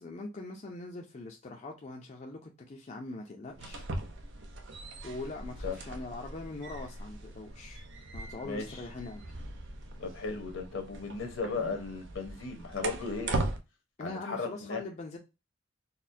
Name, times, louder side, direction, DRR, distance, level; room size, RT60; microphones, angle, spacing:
voice 1, 0.0-3.9 5.0-7.8 8.1-9.2 14.0-15.2, left 2 dB, 35° left, 0.5 m, -42 dB
sound 1, 3.5-13.6, right 2 dB, 65° right, 0.6 m, -39 dB
voice 2, 8.4-8.8 10.0-13.4 14.0-14.8, left 4 dB, 70° left, 0.9 m, -36 dB
4.1 x 2.2 x 2.6 m
head